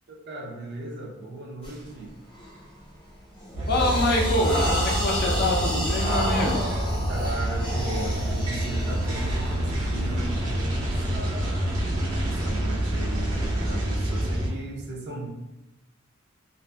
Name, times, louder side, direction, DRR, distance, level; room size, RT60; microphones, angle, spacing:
voice 1, 0.1-2.2 7.1-11.7 12.2-15.3, right 2 dB, 55° right, -1 dB, 0.5 m, -37 dB
sound 1, 1.6-1.9 2.4-2.7 3.1-11.2, equal, 30° left, 0.8 m, -31 dB
sound 2, 3.5-14.5, right 1 dB, 90° right, 0.7 m, -27 dB
voice 2, 3.7-6.6, left 1 dB, 50° left, 0 dB, 0.5 m, -25 dB
2.6 x 2.5 x 2.2 m, 0.94 s
head